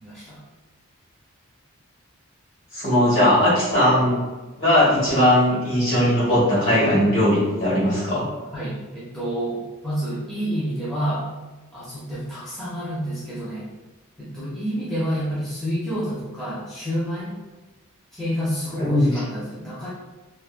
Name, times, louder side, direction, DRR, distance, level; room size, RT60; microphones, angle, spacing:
voice 1, 0.0-0.4 8.5-11.3 11.7-13.7 14.2-17.4 18.1-19.9, equal, ahead, -9 dB, 0.5 m, -29 dB
voice 2, 2.7-4.2 4.6-8.2 18.8-19.1, left 1 dB, 55° left, -7 dB, 1.4 m, -19 dB
3.3 x 2.0 x 2.4 m, 1.2 s
head